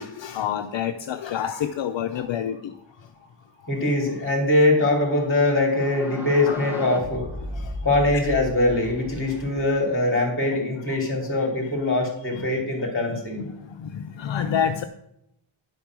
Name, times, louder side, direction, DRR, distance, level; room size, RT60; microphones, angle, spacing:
voice 1, 0.0-2.7 6.5-6.8 7.5-7.7 10.9-11.0 12.3-12.5 13.1-14.8, left 9 dB, 65° left, 7 dB, 0.6 m, -29 dB
voice 2, 3.6-7.4 7.8-13.5, left 2 dB, 25° left, 1 dB, 3.0 m, -22 dB
sound 1, 5.6-10.5, equal, 5° right, 1.2 m, -36 dB
10.5 x 5.2 x 6.0 m, 0.81 s
wide cardioid pair, 135°, 49 cm